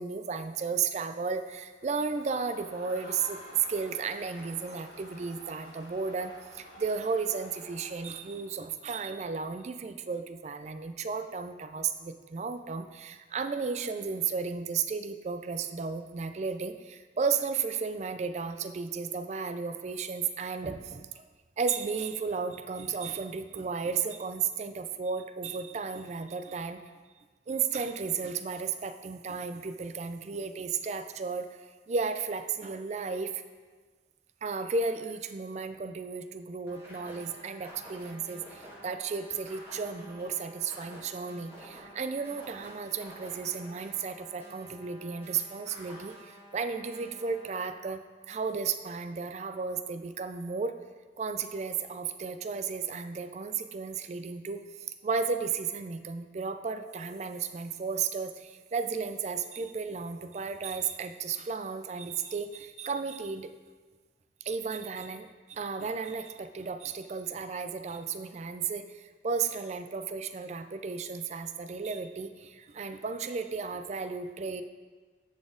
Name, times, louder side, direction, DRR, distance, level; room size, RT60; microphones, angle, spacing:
voice 1, 0.0-3.4 3.7-21.2 21.6-26.8 27.5-31.5 31.9-33.4 34.4-48.0 48.3-50.8 51.2-54.6 55.0-63.5 64.4-74.6, right 5 dB, 40° right, 9 dB, 0.3 m, -34 dB
Crowd, 1.8-8.6, left 1 dB, 70° left, 1.6 m, -50 dB
sound 1, 36.7-47.6, equal, 15° right, 1.9 m, -50 dB
10.5 x 4.1 x 3.8 m, 1.4 s
head